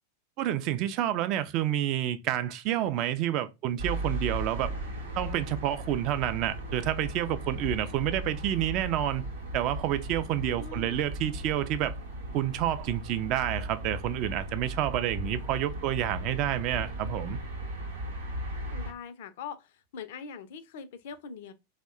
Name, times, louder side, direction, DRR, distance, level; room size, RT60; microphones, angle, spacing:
voice 1, 0.4-4.7 5.2-9.2 9.5-11.9 12.3-17.4, right 12 dB, 40° right, 0.3 m, -29 dB
sound 1, 3.8-18.9, right 1 dB, 65° right, 0.7 m, -37 dB
voice 2, 10.6-11.0 18.3-21.5, left 6 dB, 55° left, 0.4 m, -43 dB
2.8 x 2.1 x 2.2 m
figure-of-eight pair, 90°, 0 cm